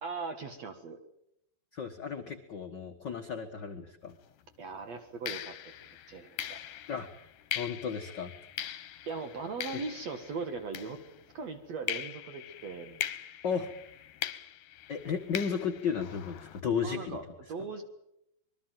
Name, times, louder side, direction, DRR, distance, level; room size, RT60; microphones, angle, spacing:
voice 1, 0.0-1.0 4.6-5.7 6.1-6.6 9.1-11.0 11.3-13.0 16.8-17.8, right 4 dB, 55° right, 8 dB, 2.5 m, -39 dB
voice 2, 1.7-4.2 6.9-7.1 7.5-8.3 9.7-9.8 13.4-13.7 14.9-17.2, left 6 dB, 50° left, 5 dB, 1.3 m, -34 dB
sound 1, 4.1-4.3 5.3-11.4 11.9-16.6, left 11 dB, 70° left, 2.6 m, -41 dB
25.0 x 22.5 x 7.6 m, 0.81 s
omnidirectional pair, 4.1 m